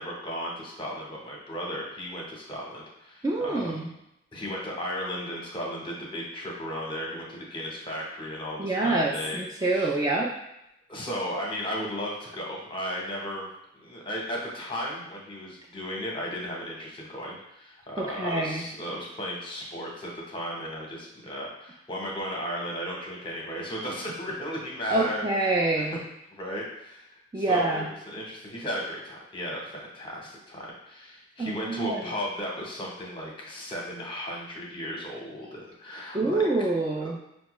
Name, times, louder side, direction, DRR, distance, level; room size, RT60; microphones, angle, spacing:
voice 1, 0.0-3.8 4.3-9.9 10.9-13.5 13.7-25.2 25.7-25.8 26.3-27.1 27.5-36.7 37.0-37.2, equal, 25° left, -2 dB, 0.8 m, -35 dB
voice 2, 3.2-3.9 8.6-10.3 18.0-18.7 24.9-26.0 27.3-27.9 31.4-32.0 36.1-37.2, right 2 dB, 20° right, -2 dB, 0.3 m, -26 dB
5.5 x 2.2 x 3.0 m, 0.85 s
head